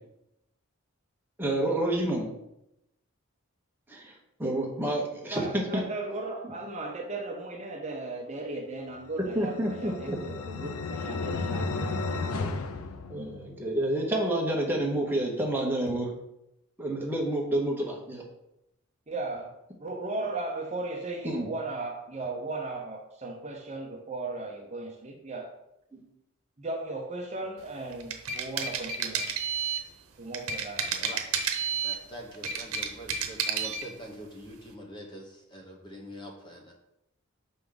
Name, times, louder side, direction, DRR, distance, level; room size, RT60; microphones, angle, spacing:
voice 1, 1.4-2.2 3.9-4.1 4.4-5.8 9.3-10.2 11.2-11.3 13.1-16.1 16.8-18.2 21.2-21.5 25.9-26.0, right 1 dB, 10° right, -1 dB, 1.1 m, -29 dB
voice 2, 5.2-12.3 19.1-19.5 19.8-25.5 26.6-29.3 30.2-31.1, right 2 dB, 30° right, 1 dB, 0.7 m, -36 dB
sound 1, 9.2-13.8, left 3 dB, 80° left, 0.5 m, -34 dB
sound 2, 27.9-29.9 30.3-32.0 32.3-33.9, right 6 dB, 90° right, 0.8 m, -31 dB
voice 3, 30.8-31.3 31.8-36.7, equal, 20° left, 0 dB, 0.9 m, -44 dB
6.0 x 5.1 x 3.9 m, 0.84 s
head